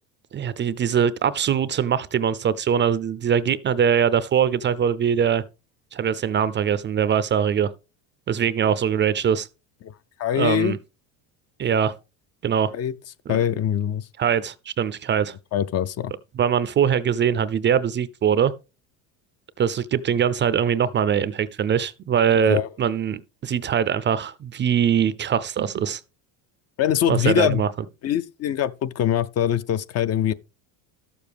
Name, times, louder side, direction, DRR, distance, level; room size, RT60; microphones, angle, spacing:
voice 1, 0.3-5.4 5.9-7.7 8.3-9.5 10.4-10.8 11.6-11.9 12.4-12.7 14.2-15.4 16.4-18.5 19.6-26.0 27.1-27.7, right 8 dB, 30° right, 0.4 m, -22 dB
voice 2, 10.2-10.8 12.7-12.9 13.3-14.1 15.5-16.1 22.3-22.7 26.8-27.6 28.0-30.3, left 10 dB, 40° left, 0.5 m, -23 dB
12.5 x 6.9 x 3.4 m
supercardioid pair, 105°, 39 cm